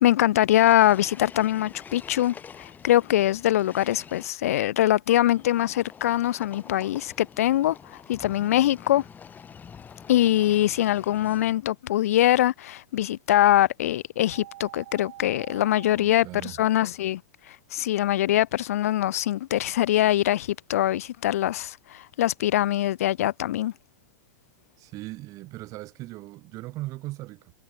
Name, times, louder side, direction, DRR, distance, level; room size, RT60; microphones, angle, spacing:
voice 1, 0.0-9.0 10.1-17.2 17.5-23.7, left 13 dB, 65° left, 0.4 m, -23 dB
sound 1, 0.6-4.3 5.3-11.7, left 7 dB, 20° left, 2.2 m, -46 dB
sound 2, 14.3-15.9, right 16 dB, 60° right, 7.6 m, -45 dB
voice 2, 15.9-16.6 24.8-27.5, right 19 dB, 40° right, 2.7 m, -39 dB
hypercardioid pair, 100°, 9 cm